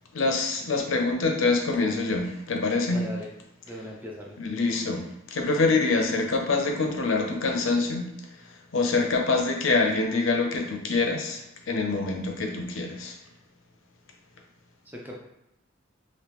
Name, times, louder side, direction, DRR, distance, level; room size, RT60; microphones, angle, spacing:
voice 1, 0.1-3.1 4.4-13.2, left 3 dB, 75° left, 2 dB, 0.6 m, -25 dB
voice 2, 2.9-3.3 3.7-4.3 14.9-15.2, left 1 dB, 10° right, -3 dB, 0.6 m, -38 dB
3.0 x 2.7 x 3.4 m, 0.83 s
head